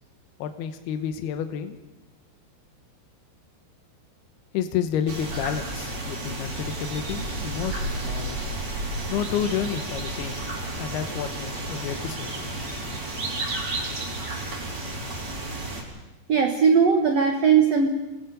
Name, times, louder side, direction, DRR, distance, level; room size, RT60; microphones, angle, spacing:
voice 1, 0.4-1.8 4.5-8.5 9.1-10.4 10.8-12.6, left 9 dB, 70° left, 8 dB, 2.8 m, -30 dB
sound 1, 5.1-15.8, right 2 dB, 40° right, 4.4 m, -32 dB
voice 2, 16.3-17.9, right 6 dB, 85° right, 4 dB, 1.4 m, -19 dB
28.0 x 19.5 x 5.2 m, 0.99 s
omnidirectional pair, 5.1 m